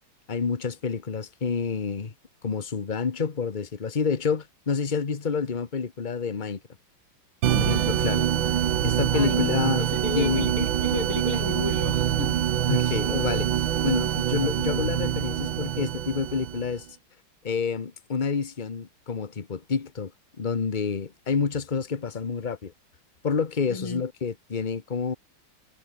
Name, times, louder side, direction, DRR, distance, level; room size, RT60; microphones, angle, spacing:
voice 1, 0.3-2.1 2.4-6.6 7.5-9.8 10.1-10.5 12.7-16.9 17.4-20.1 20.4-22.7 23.2-25.1, left 5 dB, 25° left, 1.3 m, -28 dB
sound 1, 7.4-16.8, right 10 dB, 65° right, 1.8 m, -25 dB
voice 2, 9.1-9.5 9.8-12.4 23.7-24.0, left 3 dB, 70° left, 5.6 m, -33 dB
omnidirectional pair, 2.4 m